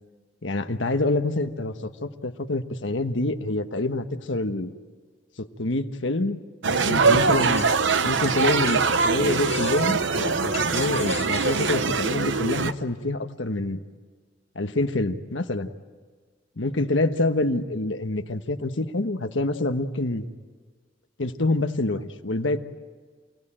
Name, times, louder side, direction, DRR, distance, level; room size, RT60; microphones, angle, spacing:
voice 1, 0.4-4.7 5.4-7.7 8.0-13.8 14.5-15.7 16.6-20.2 21.2-22.6, left 2 dB, 90° left, 8 dB, 1.3 m, -26 dB
sound 1, 6.6-12.7, right 4 dB, 75° right, 0.9 m, -23 dB
sound 2, 7.3-8.0 8.3-9.1 9.3-10.0 10.5-11.9, left 7 dB, 35° left, 1.0 m, -40 dB
28.5 x 18.0 x 8.9 m, 1.5 s
head